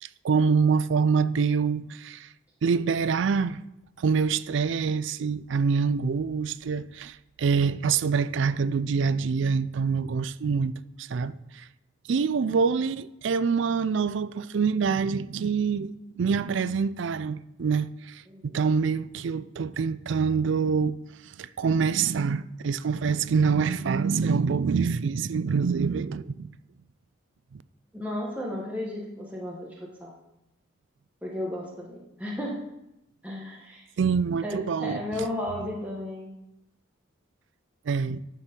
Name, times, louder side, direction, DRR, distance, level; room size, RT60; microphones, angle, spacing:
voice 1, 0.0-2.3 2.6-3.6 4.0-11.7 12.1-21.0 21.2-26.5 27.5-27.6 34.0-35.3 37.9-38.2, right 5 dB, 65° right, 0.4 m, -26 dB
voice 2, 18.3-18.6 27.9-29.7 30.0-30.1 31.2-32.5 33.2-33.9 34.4-36.3, left 1 dB, 5° right, 1.3 m, -34 dB
10.5 x 4.5 x 6.7 m
head